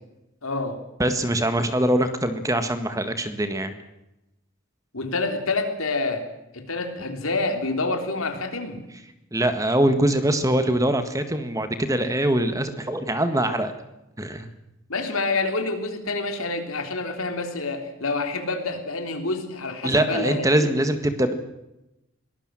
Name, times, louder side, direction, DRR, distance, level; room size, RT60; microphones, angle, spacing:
voice 1, 0.4-0.8 4.9-6.3 6.5-8.8 14.9-20.8, left 3 dB, 85° left, 6 dB, 3.6 m, -27 dB
voice 2, 1.0-3.7 9.3-13.7 14.2-14.5 19.8-21.3, right 1 dB, 15° right, 9 dB, 1.6 m, -23 dB
23.0 x 19.0 x 7.6 m, 0.92 s
head